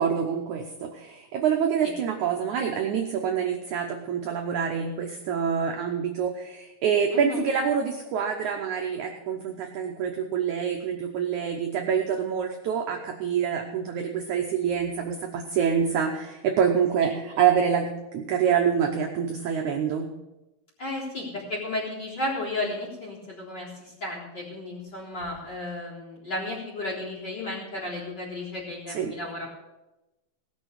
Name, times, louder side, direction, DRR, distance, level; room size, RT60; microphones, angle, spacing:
voice 1, 0.0-17.9 18.1-20.1 28.9-29.1, right 7 dB, 80° right, 2 dB, 1.7 m, -26 dB
voice 2, 7.1-7.4 17.0-17.1 20.8-29.5, left 2 dB, 25° left, -5 dB, 3.9 m, -33 dB
18.0 x 6.8 x 6.5 m, 1.0 s
omnidirectional pair, 4.7 m